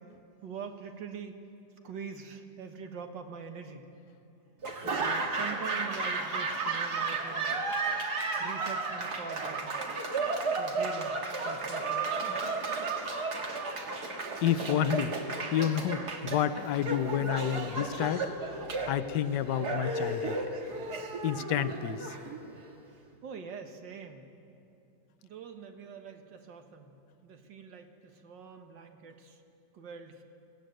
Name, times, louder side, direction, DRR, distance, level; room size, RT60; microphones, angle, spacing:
voice 1, 0.4-1.4 1.8-3.9 5.0-7.6 8.4-9.9 10.6-12.1 23.2-24.3 25.2-26.9 27.2-29.4 29.7-30.2, right 6 dB, 75° right, 6 dB, 2.1 m, -44 dB
Laughter / Applause, 4.6-22.7, right 3 dB, 60° right, 2.2 m, -33 dB
voice 2, 14.1-15.1 15.5-18.3 18.9-20.4 21.2-22.1, left 10 dB, 75° left, 13 dB, 1.3 m, -30 dB
21.5 x 16.5 x 9.1 m, 2.6 s
omnidirectional pair, 2.0 m